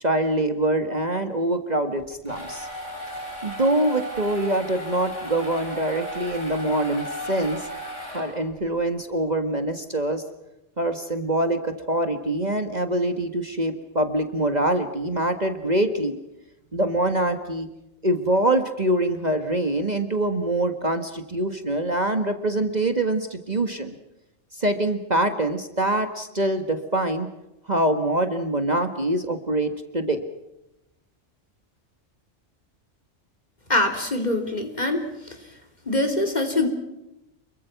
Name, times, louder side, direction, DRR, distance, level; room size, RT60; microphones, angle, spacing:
voice 1, 0.0-2.7 3.4-7.7 8.1-10.2 10.8-16.2 16.7-17.7 18.0-23.9 24.5-27.3 27.7-30.2, right 1 dB, 35° right, 7 dB, 1.8 m, -24 dB
sound 1, 2.0-8.7, equal, 70° left, 7.0 m, -35 dB
voice 2, 33.7-35.4 35.9-36.7, left 2 dB, 35° left, 5 dB, 3.9 m, -24 dB
29.0 x 23.0 x 6.0 m, 0.90 s
omnidirectional pair, 1.3 m